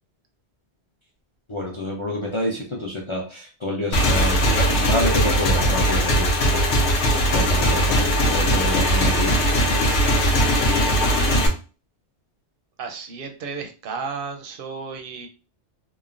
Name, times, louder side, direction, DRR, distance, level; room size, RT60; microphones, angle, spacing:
voice 1, 1.5-6.6 7.3-9.4, left 1 dB, 55° left, -2 dB, 0.3 m, -28 dB
Motorcycle / Engine, 3.9-11.5, equal, 75° left, 0.9 m, -19 dB
voice 2, 10.0-11.5 12.8-15.3, right 4 dB, 60° right, 5 dB, 0.6 m, -34 dB
3.0 x 2.0 x 2.4 m, 0.35 s
omnidirectional pair, 1.2 m